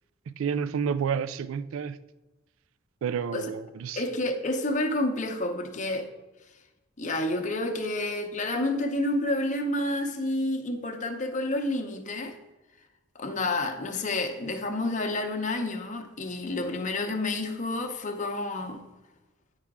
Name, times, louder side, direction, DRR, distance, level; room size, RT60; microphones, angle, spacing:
voice 1, 0.3-2.0 3.0-4.0, right 7 dB, 75° right, 0.3 m, -30 dB
voice 2, 3.9-6.1 7.0-12.4 13.1-18.8, left 2 dB, 40° left, 0.8 m, -29 dB
9.8 x 4.8 x 3.6 m
head